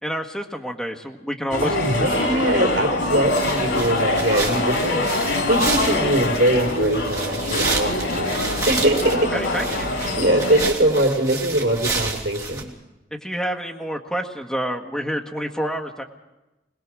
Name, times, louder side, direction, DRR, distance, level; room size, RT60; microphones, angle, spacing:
voice 1, 0.0-1.7 1.9-2.1 9.3-9.9 13.2-16.0, equal, 5° left, 2 dB, 1.5 m, -28 dB
sound 1, 1.5-10.7, left 2 dB, 90° left, 2.9 m, -24 dB
voice 2, 1.6-8.4 8.7-9.6 10.2-12.7, right 1 dB, 65° right, 0 dB, 3.3 m, -22 dB
sound 2, 3.2-12.6, right 3 dB, 20° right, 2.5 m, -30 dB
22.5 x 20.0 x 6.2 m, 1.0 s
head